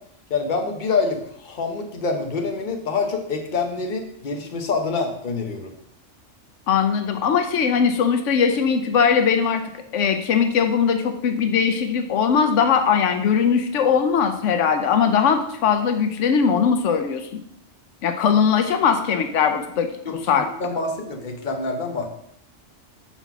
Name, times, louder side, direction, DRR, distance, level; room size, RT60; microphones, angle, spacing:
voice 1, 0.3-5.7 20.0-22.1, left 4 dB, 45° left, 4 dB, 1.0 m, -26 dB
voice 2, 6.7-9.6 9.9-17.4 18.0-20.5, left 6 dB, 85° left, 7 dB, 1.0 m, -20 dB
5.7 x 4.2 x 5.8 m, 0.71 s
omnidirectional pair, 1.2 m